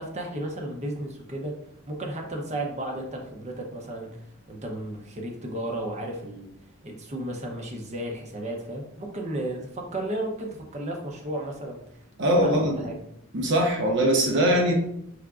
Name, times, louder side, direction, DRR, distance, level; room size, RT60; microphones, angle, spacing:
voice 1, 0.0-1.5 1.9-4.1 4.5-6.5 6.8-12.0 12.4-12.9, right 1 dB, 35° right, 1 dB, 0.7 m, -33 dB
voice 2, 12.2-12.8 13.3-14.7, equal, 60° right, 0 dB, 0.9 m, -21 dB
4.8 x 3.5 x 2.4 m, 0.74 s
head